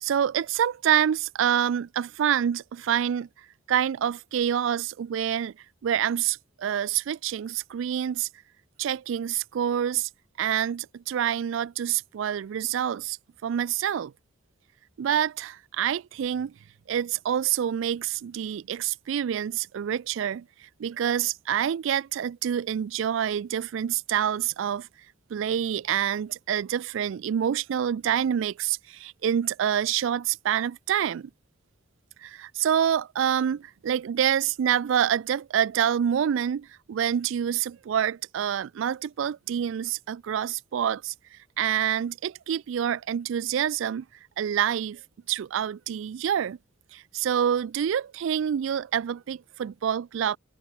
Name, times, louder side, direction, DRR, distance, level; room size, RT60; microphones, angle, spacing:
voice 1, 0.0-3.3 3.7-5.5 5.8-8.3 8.8-10.1 10.4-13.2 13.4-14.1 15.0-16.5 16.9-24.9 25.3-31.3 32.2-44.1 44.4-45.0 45.3-46.6 46.9-50.4, right 9 dB, 65° right, 0.3 m, -27 dB
head